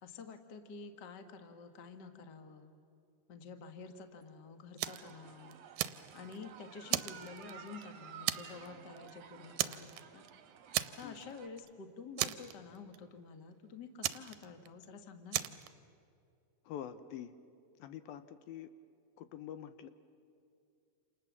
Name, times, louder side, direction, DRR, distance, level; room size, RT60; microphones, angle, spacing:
voice 1, 0.0-2.7 3.3-5.6 6.1-10.2 10.9-15.6, left 4 dB, 55° left, 7 dB, 1.2 m, -49 dB
sound 1, 4.8-11.5, right 8 dB, 55° right, 1.9 m, -54 dB
Fire, 4.8-5.1 5.5-6.4 6.9-7.8 8.3-8.7 9.0-9.1 9.6-10.3 10.7-11.3 11.6-11.7 12.2-13.0 14.0-14.9 15.3-15.7, right 14 dB, 75° right, 2.2 m, -36 dB
voice 2, 16.7-17.3 17.8-18.7 19.2-19.9, left 10 dB, 75° left, 11 dB, 2.5 m, -45 dB
28.0 x 28.0 x 7.3 m, 2.5 s
omnidirectional pair, 4.5 m